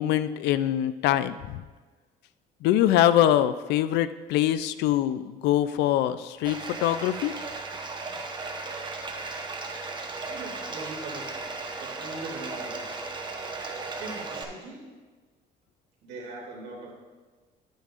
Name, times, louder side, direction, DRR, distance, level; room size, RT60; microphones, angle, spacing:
voice 1, 0.0-1.6 2.6-7.3, left 12 dB, 85° left, 13 dB, 0.4 m, -24 dB
Bathtub (filling or washing), 6.4-14.4, right 3 dB, 25° right, 1.0 m, -36 dB
voice 2, 10.3-11.3 11.7-13.0 14.0-14.9 16.0-16.9, right 2 dB, 85° right, -2 dB, 2.6 m, -40 dB
10.5 x 9.0 x 2.5 m, 1.4 s
cardioid pair, 110°, 17 cm